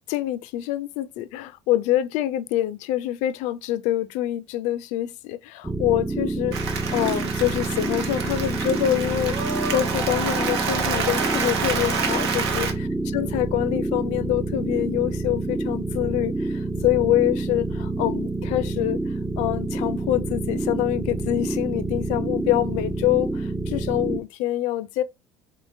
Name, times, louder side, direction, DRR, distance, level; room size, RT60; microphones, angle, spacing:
voice 1, 0.1-12.7 13.1-19.0 19.4-25.0, left 13 dB, 60° left, 0.4 m, -25 dB
sound 1, 5.6-24.2, right 2 dB, 10° right, 0.3 m, -28 dB
Applause, 6.5-12.7, right 5 dB, 80° right, 0.6 m, -28 dB
3.6 x 2.9 x 2.7 m
hypercardioid pair, 65°, 13 cm